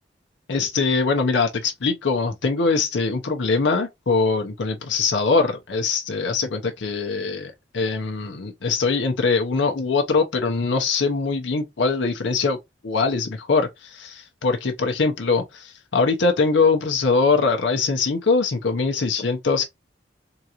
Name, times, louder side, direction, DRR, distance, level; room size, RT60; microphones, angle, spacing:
voice 1, 0.5-12.6 12.8-19.6, left 4 dB, 85° left, 0.7 m, -22 dB
3.9 x 2.4 x 2.8 m
head